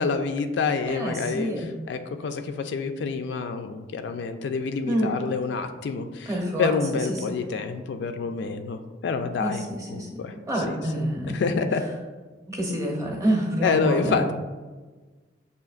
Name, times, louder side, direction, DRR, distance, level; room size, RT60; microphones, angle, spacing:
voice 1, 0.0-1.5 1.9-6.3 6.6-9.6 9.9-10.3 11.3-11.8 13.6-14.3, left 5 dB, 65° left, 8 dB, 0.3 m, -27 dB
voice 2, 0.9-1.7 4.8-5.1 6.3-7.4 9.4-11.4 12.5-14.2, right 1 dB, 15° right, -1 dB, 0.7 m, -28 dB
6.7 x 2.8 x 2.4 m, 1.3 s
head